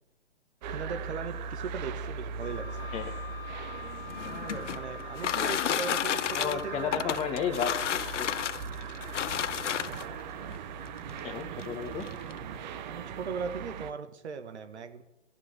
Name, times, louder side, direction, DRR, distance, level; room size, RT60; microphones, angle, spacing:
sound 1, 0.6-13.9, right 6 dB, 40° right, 0.9 m, -39 dB
voice 1, 0.7-2.8 4.2-7.2 9.7-10.0 12.9-15.0, right 6 dB, 65° right, 8 dB, 1.6 m, -38 dB
Wind instrument woodwind instrument, 2.4-6.9, left 11 dB, 55° left, 1.0 m, -44 dB
sound 2, 4.0-10.2 11.1-11.2 11.6-11.7 12.0-12.4, left 10 dB, 90° left, 0.5 m, -31 dB
voice 2, 6.4-7.7 8.2-8.3 11.2-12.0, left 8 dB, 20° left, 6 dB, 1.2 m, -32 dB
14.5 x 6.1 x 7.9 m, 1.0 s
hypercardioid pair, 135°, 35 cm